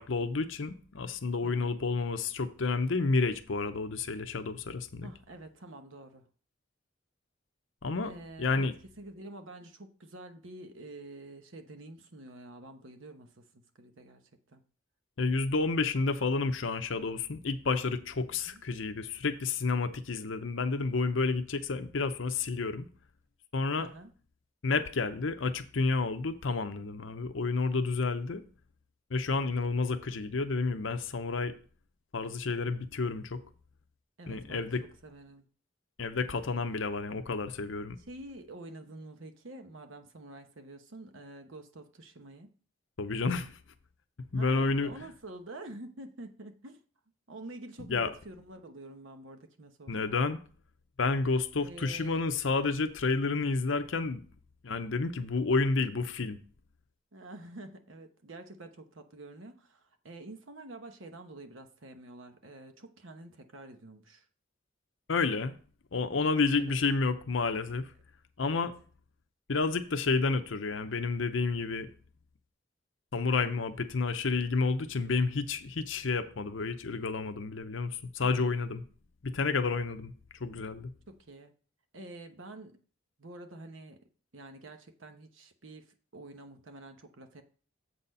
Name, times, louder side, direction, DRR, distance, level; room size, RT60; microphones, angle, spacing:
voice 1, 0.0-5.1 7.8-8.1 8.4-8.7 15.2-22.9 23.5-23.9 24.6-28.4 29.1-31.5 32.1-33.4 34.3-34.8 36.0-38.0 43.0-43.6 44.3-44.9 47.9-48.1 49.9-50.4 51.0-54.2 54.6-56.4 65.1-65.6 65.9-67.9 68.4-68.7 69.5-71.9 73.1-78.8 79.2-80.1 80.4-80.9, left 4 dB, 70° left, 0.7 m, -30 dB
voice 2, 1.4-1.8 5.0-6.2 8.0-8.7 9.0-14.2 14.5-14.6 18.3-18.6 23.8-24.1 34.2-34.8 35.0-35.5 38.0-42.5 44.3-46.8 47.3-50.1 51.6-52.2 57.1-64.2 66.6-66.8 68.4-68.7 78.2-78.7 81.1-81.5 81.9-82.8 83.2-84.0 84.3-87.4, right 2 dB, 75° right, 1.0 m, -48 dB
7.8 x 4.2 x 5.4 m
head